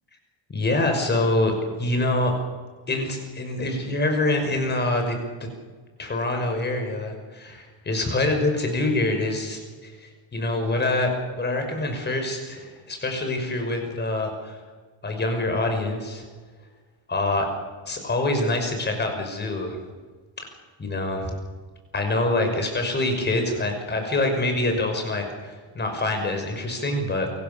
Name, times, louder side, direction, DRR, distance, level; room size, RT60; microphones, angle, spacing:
voice 1, 0.5-2.4 2.9-5.5 6.0-11.1 11.4-14.6 15.0-16.2 17.1-17.5 17.9-19.8 20.8-21.3 21.9-27.3, left 2 dB, 20° left, 4 dB, 5.7 m, -25 dB
28.0 x 25.0 x 7.0 m, 1.4 s
cardioid pair, 180°, 48 cm